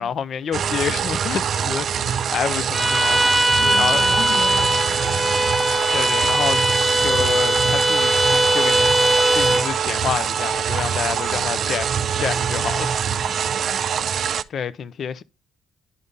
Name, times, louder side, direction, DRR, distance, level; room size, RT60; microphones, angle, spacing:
voice 1, 0.0-4.0 5.9-6.6 7.0-9.0 9.3-13.0 13.2-13.4 14.5-15.2, left 7 dB, 60° left, 0.5 m, -28 dB
sound 1, 0.5-14.4, right 8 dB, 60° right, 0.4 m, -24 dB
Bowed string instrument, 2.7-9.7, right 1 dB, ahead, 0.6 m, -20 dB
voice 2, 3.6-5.6 13.0-14.1, left 4 dB, 75° left, 2.6 m, -36 dB
11.0 x 3.6 x 4.0 m
cardioid pair, 90°, 0 cm